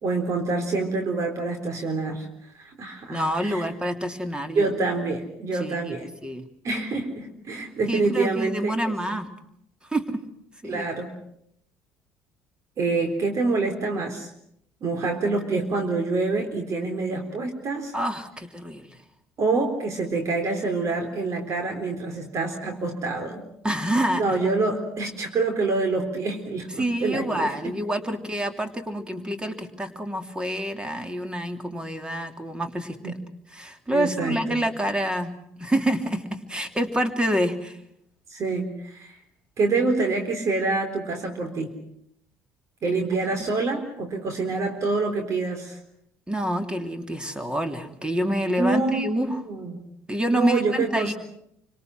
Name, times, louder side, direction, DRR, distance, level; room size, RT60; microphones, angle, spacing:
voice 1, 0.0-2.3 2.6-3.7 4.5-6.1 6.6-8.9 10.6-11.1 12.8-14.3 14.8-17.9 19.4-23.4 24.2-27.6 33.0-33.1 33.9-34.6 38.3-39.2 39.6-41.7 42.8-45.8 48.6-49.8 50.3-51.1, right 3 dB, 45° right, 4 dB, 3.9 m, -26 dB
voice 2, 3.1-4.7 5.6-5.8 6.2-6.4 7.9-9.3 9.9-10.2 10.6-10.9 17.9-19.0 23.6-24.2 26.8-33.2 33.5-35.3 35.6-37.8 42.9-43.0 46.3-49.4 50.1-51.1, right 1 dB, 10° right, 7 dB, 3.3 m, -27 dB
27.0 x 25.5 x 6.2 m, 0.73 s
figure-of-eight pair, 55°, 7 cm